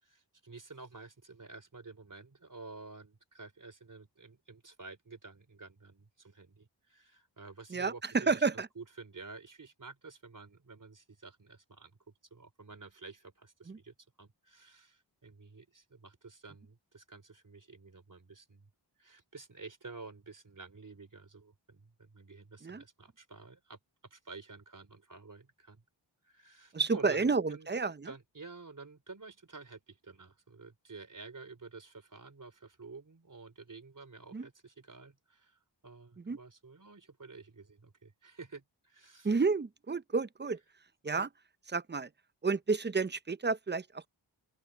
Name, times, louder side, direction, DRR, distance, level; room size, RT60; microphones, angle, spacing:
voice 1, 0.0-11.9 12.3-18.7 19.0-23.8 24.1-25.8 26.2-27.7 28.0-39.3, right 4 dB, 45° right, 3.8 m, -51 dB
voice 2, 7.7-8.7 13.7-13.8 22.6-22.8 26.7-28.1 34.3-34.5 36.3-36.4 39.2-40.6 41.0-41.3 41.7-42.1 42.4-44.1, right 4 dB, 25° right, 0.6 m, -31 dB
open air
cardioid pair, 60°, 44 cm